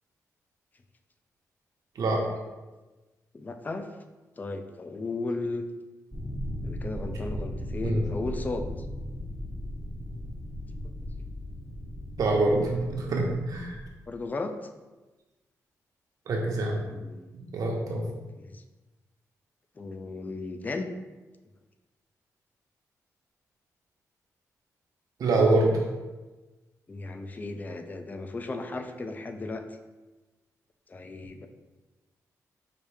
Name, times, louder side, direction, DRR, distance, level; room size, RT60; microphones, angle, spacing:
voice 1, 3.3-3.9 4.4-5.6 6.6-8.7 14.1-14.5 16.9-17.3 18.4-18.6 19.8-20.9 26.9-29.6 30.9-31.5, left 3 dB, 25° left, 6 dB, 0.4 m, -35 dB
sound 1, 6.1-13.9, equal, ahead, 0.7 m, -37 dB
voice 2, 12.2-13.7 16.3-16.8 17.5-18.1 25.2-25.8, right 2 dB, 75° right, -1 dB, 0.9 m, -25 dB
5.0 x 2.7 x 3.3 m, 1.2 s
wide cardioid pair, 115°, 6 cm